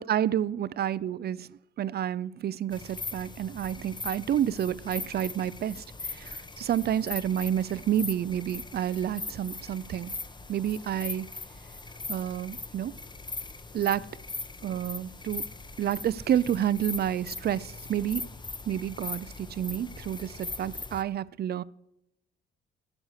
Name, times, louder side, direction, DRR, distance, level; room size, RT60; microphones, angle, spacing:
voice 1, 0.0-10.1 10.5-11.3 12.1-13.0 13.7-14.1 14.6-15.4 15.8-18.2 18.7-21.6, right 10 dB, 55° right, 0.6 m, -29 dB
sound 1, 2.7-21.0, left 3 dB, 20° left, 1.2 m, -40 dB
14.0 x 9.6 x 6.6 m
cardioid pair, 90°, 20 cm